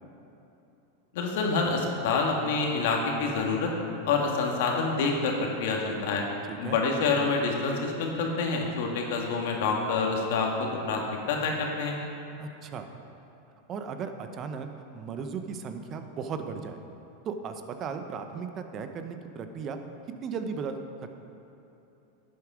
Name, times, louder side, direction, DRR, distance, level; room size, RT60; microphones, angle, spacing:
voice 1, 1.1-3.7 4.0-6.2 6.6-12.0, left 4 dB, 70° left, 1 dB, 1.8 m, -27 dB
voice 2, 6.5-6.8 12.4-12.9 13.7-14.7 14.9-16.8 17.2-19.8 20.2-20.8, right 6 dB, 35° right, 7 dB, 0.9 m, -36 dB
11.5 x 8.5 x 5.0 m, 2.9 s
hypercardioid pair, 115°, 0 cm